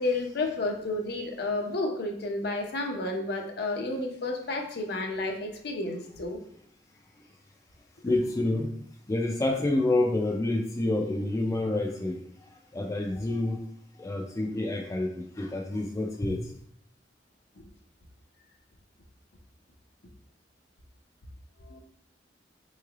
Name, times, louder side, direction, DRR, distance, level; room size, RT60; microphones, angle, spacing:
voice 1, 0.0-6.4 21.6-21.8, left 2 dB, 65° left, 2 dB, 0.6 m, -31 dB
voice 2, 8.0-8.7 9.1-13.6 14.0-16.5, left 2 dB, 20° left, 1 dB, 0.3 m, -28 dB
3.7 x 3.1 x 2.4 m, 0.72 s
head